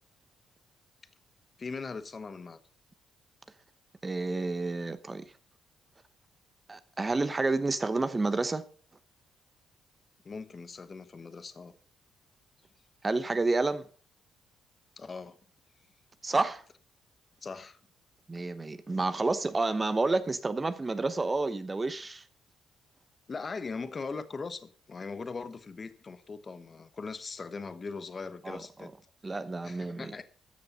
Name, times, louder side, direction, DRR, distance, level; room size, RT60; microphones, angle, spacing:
voice 1, 1.6-2.6 10.2-11.7 15.0-15.4 17.4-17.8 23.3-28.9 29.6-30.2, left 4 dB, 35° left, 1.1 m, -40 dB
voice 2, 4.0-5.2 6.7-8.6 13.0-13.9 16.2-16.6 18.3-22.2 28.4-28.9 29.2-30.1, right 3 dB, 25° right, 0.9 m, -30 dB
13.0 x 6.7 x 5.5 m
cardioid pair, 90°, 0 cm